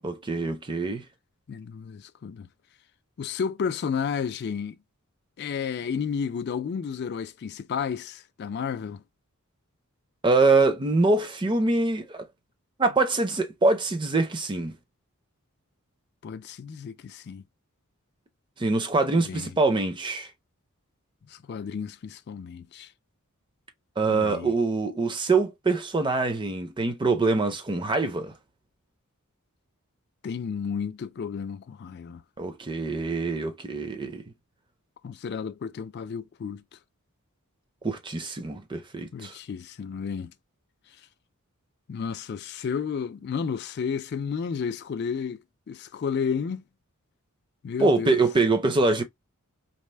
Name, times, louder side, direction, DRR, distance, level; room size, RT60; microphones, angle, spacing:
voice 1, 0.0-1.0 10.2-12.3 12.8-14.7 18.6-20.3 24.0-28.3 32.4-34.2 37.8-39.3 47.8-49.0, right 3 dB, 20° right, 0.5 m, -24 dB
voice 2, 1.5-2.5 3.2-4.8 5.4-9.0 16.2-17.4 19.1-19.5 21.3-22.9 24.1-24.5 30.2-32.2 35.0-36.6 39.1-40.3 41.9-46.6 47.6-48.2, left 6 dB, 50° left, 0.3 m, -32 dB
4.1 x 2.0 x 3.2 m
head